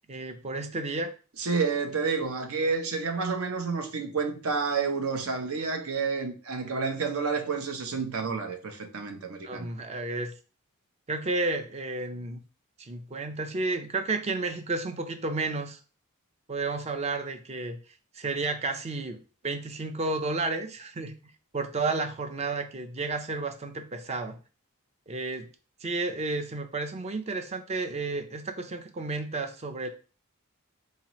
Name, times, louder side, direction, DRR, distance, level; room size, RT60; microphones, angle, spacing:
voice 1, 0.1-1.1 9.4-10.3 11.1-12.4 12.8-15.8 16.5-17.8 18.1-21.1 21.5-24.4 25.1-25.5 25.8-29.9, right 3 dB, 30° right, 0.5 m, -32 dB
voice 2, 1.4-9.7, right 4 dB, 70° right, 0.7 m, -29 dB
4.1 x 2.9 x 2.9 m
head